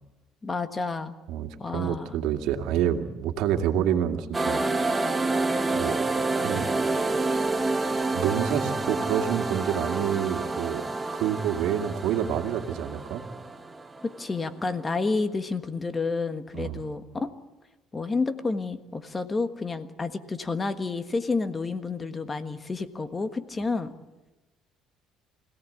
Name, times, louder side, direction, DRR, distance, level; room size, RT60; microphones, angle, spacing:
voice 1, 0.4-1.1 1.6-2.2 14.0-17.3 17.9-23.9, left 3 dB, 20° left, 10 dB, 1.5 m, -30 dB
voice 2, 1.3-5.1 5.7-6.0 6.4-6.7 8.1-10.8 11.1-13.2 16.5-16.8, right 9 dB, 80° right, 5 dB, 2.3 m, -28 dB
sound 1, 4.3-14.7, right 3 dB, 15° right, 1.5 m, -28 dB
25.5 x 17.5 x 8.6 m, 1.1 s
cardioid pair, 125°, 0 cm